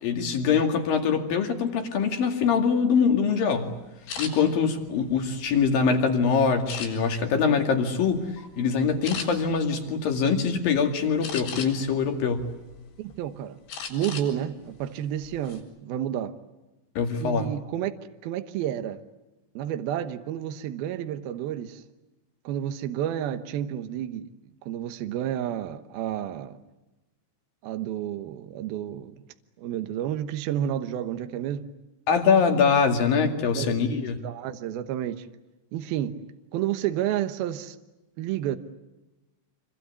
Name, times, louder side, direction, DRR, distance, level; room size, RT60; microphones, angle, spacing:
voice 1, 0.0-3.7 4.2-12.5 17.0-17.5 32.1-34.2, left 6 dB, 50° left, 3.5 m, -23 dB
sound 1, 4.1-4.3 5.0-5.9 6.7-7.3 7.8-8.0 8.4-8.5 9.0-9.3 11.2-11.9 12.4-13.2 13.7-14.3 14.6-14.8 15.2-15.6, left 6 dB, 70° left, 8.5 m, -36 dB
voice 2, 13.0-13.6 13.9-16.4 17.2-17.9 18.2-19.0 19.6-21.8 22.4-24.3 24.7-26.6 27.6-29.1 29.6-31.7 33.5-34.0 34.2-35.3 35.7-36.2 36.5-37.8 38.2-38.6, right 11 dB, 85° right, 2.2 m, -30 dB
27.0 x 24.5 x 8.4 m
omnidirectional pair, 6.0 m